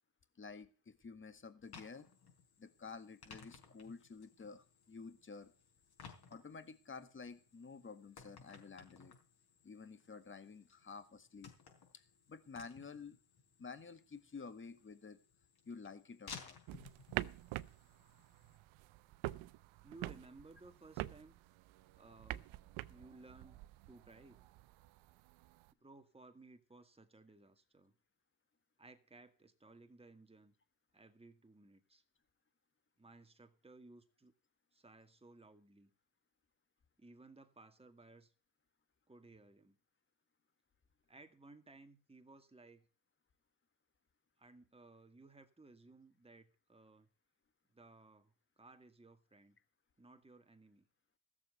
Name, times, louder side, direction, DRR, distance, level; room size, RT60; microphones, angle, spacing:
voice 1, 0.4-2.1 2.6-5.5 6.3-9.1 9.6-11.5 11.9-12.0 12.3-13.2 13.6-15.2 15.6-16.6, left 5 dB, 25° left, 11 dB, 1.6 m, -51 dB
sound 1, 1.6-18.6, left 5 dB, 50° left, 4.7 m, -59 dB
sound 2, 16.7-25.7, right 17 dB, 80° right, 0.8 m, -47 dB
voice 2, 19.8-21.4 21.9-22.5 22.8-23.6 23.9-24.4 25.8-27.9 28.8-30.5 30.9-32.0 33.0-34.3 34.7-35.9 37.0-38.3 39.1-39.8 41.1-42.9 44.4-47.1 47.7-49.6 50.0-50.9, right 3 dB, 10° right, 6 dB, 2.1 m, -59 dB
15.0 x 7.4 x 6.7 m, 0.37 s
cardioid pair, 85°, 46 cm